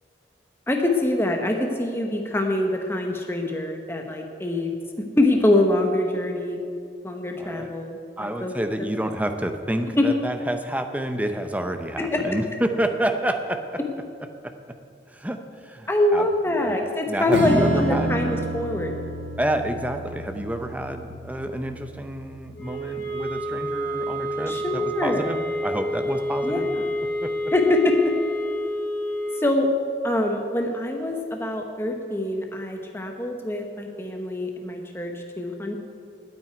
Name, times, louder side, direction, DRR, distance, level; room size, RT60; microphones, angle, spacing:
voice 1, 0.7-4.7 5.2-6.6 7.0-8.5 10.0-10.1 12.0-12.2 15.9-18.9 24.5-25.3 26.4-26.8 27.5-28.1 29.4-29.7 30.0-35.8, left 1 dB, 15° left, 2 dB, 0.9 m, -24 dB
voice 2, 7.4-7.7 8.2-13.8 14.4-14.5 15.1-18.2 19.4-26.7 27.2-27.3 31.1-31.2, right 1 dB, 10° right, 7 dB, 0.6 m, -29 dB
Strum, 17.3-24.2, right 2 dB, 75° right, 1.8 m, -30 dB
sound 1, 22.5-29.5, equal, 50° left, 3.5 m, -28 dB
9.2 x 9.0 x 9.3 m, 2.4 s
head